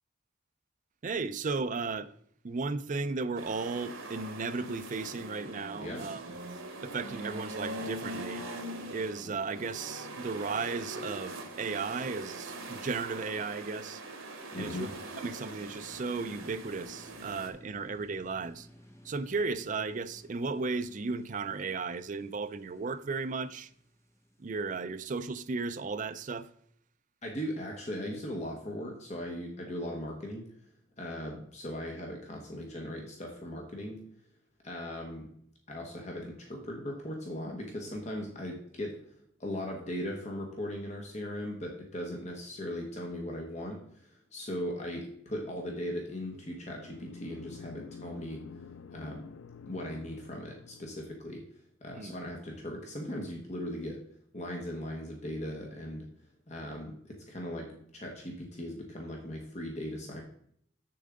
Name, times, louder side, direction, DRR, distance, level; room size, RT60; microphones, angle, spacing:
voice 1, 1.0-2.1 2.4-6.2 6.8-8.5 8.9-14.0 14.5-14.9 15.2-18.7 19.0-23.7 24.4-26.5 51.9-52.1, right 4 dB, 40° right, 0.4 m, -35 dB
sound 1, 3.4-17.5, right 2 dB, 85° right, 1.3 m, -42 dB
voice 2, 14.5-14.9 27.2-30.4 31.0-34.0 34.6-35.3 35.7-39.0 39.4-48.4 48.9-49.2 49.7-51.4 51.8-54.0 54.3-56.1 56.5-60.2, equal, 35° left, 1.2 m, -38 dB
sound 2, 15.5-24.6, equal, 15° left, 1.2 m, -57 dB
sound 3, 46.2-51.2, left 5 dB, 75° left, 0.4 m, -49 dB
7.4 x 6.8 x 3.8 m
head